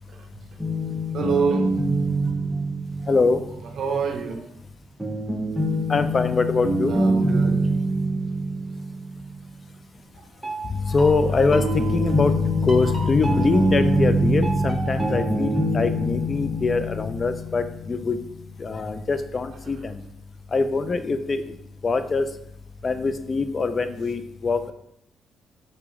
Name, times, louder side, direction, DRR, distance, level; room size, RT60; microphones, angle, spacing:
sound 1, 0.6-3.7 5.0-9.6 10.4-18.1, right 1 dB, 5° right, 0.8 m, -25 dB
voice 1, 1.1-1.7 3.0-3.1 3.8-4.5 6.9-7.6, right 5 dB, 65° right, 5 dB, 0.6 m, -26 dB
voice 2, 3.1-3.4 5.9-7.0 10.7-18.2 18.6-20.0 20.5-21.4 21.8-22.3 22.8-24.7, left 4 dB, 35° left, 10 dB, 0.3 m, -23 dB
4.2 x 3.0 x 3.5 m, 0.77 s
cardioid pair, 90°, 0 cm